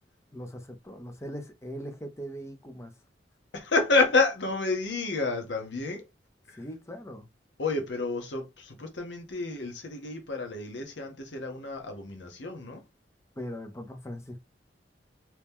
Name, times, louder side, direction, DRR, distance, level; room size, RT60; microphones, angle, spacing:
voice 1, 0.3-2.9 6.5-7.3 13.4-14.4, equal, 15° left, 0.6 m, -40 dB
voice 2, 3.5-6.0 6.5-6.6 7.6-12.8, left 3 dB, 75° left, 1.0 m, -29 dB
3.0 x 2.8 x 3.5 m
head